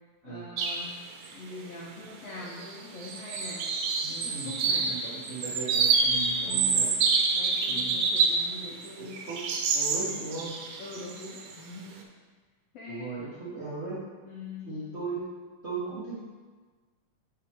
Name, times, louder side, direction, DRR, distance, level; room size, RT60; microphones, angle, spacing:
voice 1, 0.2-1.0 1.3-3.7 4.1-4.9 6.4-6.9 7.3-9.3 10.8-11.9 12.7-13.1 14.2-14.8, left 3 dB, 75° left, -4 dB, 1.5 m, -42 dB
sound 1, 0.6-0.9 1.3-1.4 2.3-2.7 3.0-8.5 8.8-11.5, right 4 dB, 90° right, 2.2 m, -27 dB
voice 2, 4.0-6.9 7.7-8.0 9.0-10.6 12.9-14.0 14.7-15.2 15.6-16.2, right 3 dB, 55° right, -10 dB, 0.7 m, -37 dB
6.1 x 5.7 x 3.6 m, 1.4 s
omnidirectional pair, 3.6 m